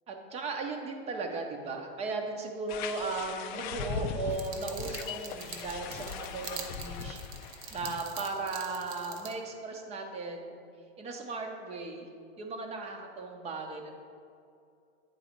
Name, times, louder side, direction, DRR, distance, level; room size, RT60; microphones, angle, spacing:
voice 1, 0.1-10.5 11.0-12.1 12.4-14.0, right 3 dB, 20° right, 3 dB, 0.7 m, -37 dB
sound 1, 2.7-8.0, left 6 dB, 50° left, 0.5 m, -39 dB
sound 2, 4.3-9.3, right 7 dB, 55° right, 0.8 m, -45 dB
9.0 x 4.0 x 5.1 m, 2.4 s
supercardioid pair, 145°, 32 cm